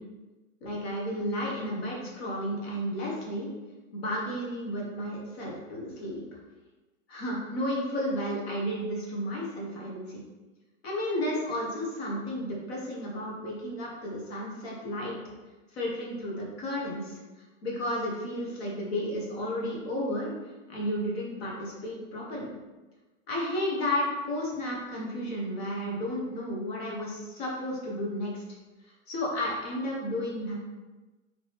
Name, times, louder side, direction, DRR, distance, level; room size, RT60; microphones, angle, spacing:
voice 1, 0.6-3.5 3.9-6.2 7.1-10.2 10.8-15.2 15.7-17.2 17.6-20.3 20.7-22.5 23.3-28.4 29.1-30.6, equal, 50° left, -3 dB, 1.4 m, -32 dB
5.0 x 3.0 x 3.5 m, 1.2 s
hypercardioid pair, 145°, 41 cm